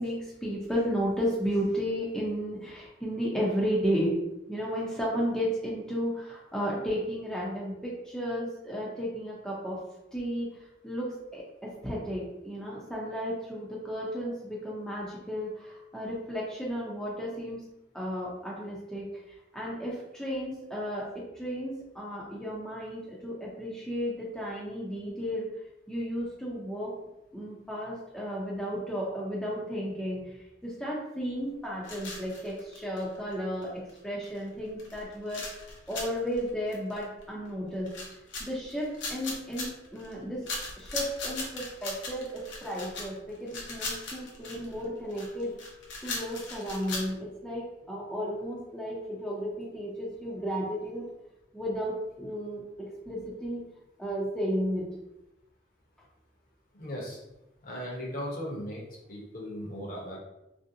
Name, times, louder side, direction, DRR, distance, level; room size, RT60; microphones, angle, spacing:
voice 1, 0.0-4.1 4.5-9.8 10.1-17.6 17.9-19.1 19.5-25.5 25.9-26.9 27.3-35.6 35.9-37.9 38.4-40.4 40.8-45.5 46.0-51.1 51.5-53.6 54.0-54.9, equal, 5° left, -5 dB, 0.5 m, -33 dB
sound 1, 31.8-33.3 33.6-33.7 33.9-34.0 34.2-34.5 34.8-37.5 37.9-40.1 40.5-47.1, left 3 dB, 90° left, 0.8 m, -38 dB
voice 2, 56.8-57.2 57.6-58.8 59.1-60.2, equal, 50° left, -3 dB, 0.9 m, -37 dB
3.2 x 2.6 x 2.7 m, 0.91 s
head